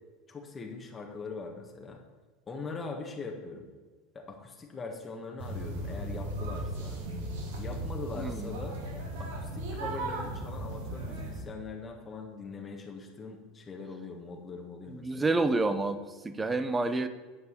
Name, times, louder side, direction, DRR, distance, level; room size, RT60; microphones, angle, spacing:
voice 1, 0.3-2.0 2.5-3.7 4.1-7.0 7.6-8.8 9.2-15.3, left 4 dB, 25° left, 1 dB, 1.7 m, -42 dB
sound 1, 5.4-11.4, right 1 dB, 80° right, 2.6 m, -36 dB
voice 2, 8.2-8.5 14.9-17.1, right 3 dB, 15° right, 11 dB, 0.9 m, -29 dB
10.0 x 5.3 x 8.2 m, 1.4 s
supercardioid pair, 110°, 0 cm